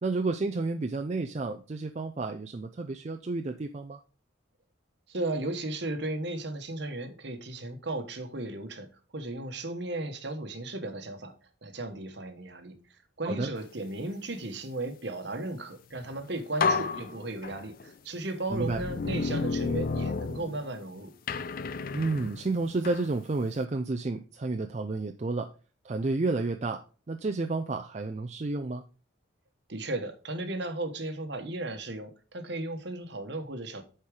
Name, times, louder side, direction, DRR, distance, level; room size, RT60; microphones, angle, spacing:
voice 1, 0.0-4.0 13.2-13.5 18.5-18.8 21.9-25.5 25.8-26.8 27.1-28.8, right 3 dB, 35° right, 0.4 m, -31 dB
voice 2, 5.1-8.9 9.1-11.3 11.6-12.7 13.2-21.1 29.7-33.8, right 2 dB, 55° right, 1.1 m, -35 dB
sound 1, 16.0-16.2 16.6-17.9 18.5-20.9 21.3-23.1, left 4 dB, 45° left, 0.4 m, -31 dB
8.4 x 4.4 x 4.8 m
head